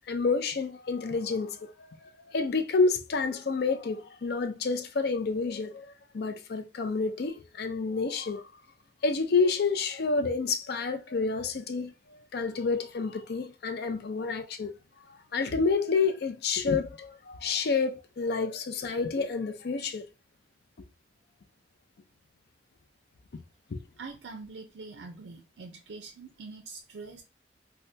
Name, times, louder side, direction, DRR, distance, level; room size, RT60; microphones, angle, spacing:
voice 1, 0.1-1.7 2.3-5.9 6.1-8.5 9.0-11.9 12.3-14.8 15.1-20.1 23.7-23.8, left 4 dB, 65° left, 0.5 m, -29 dB
voice 2, 24.0-27.2, right 4 dB, 90° right, 0.5 m, -44 dB
2.8 x 2.2 x 3.3 m
head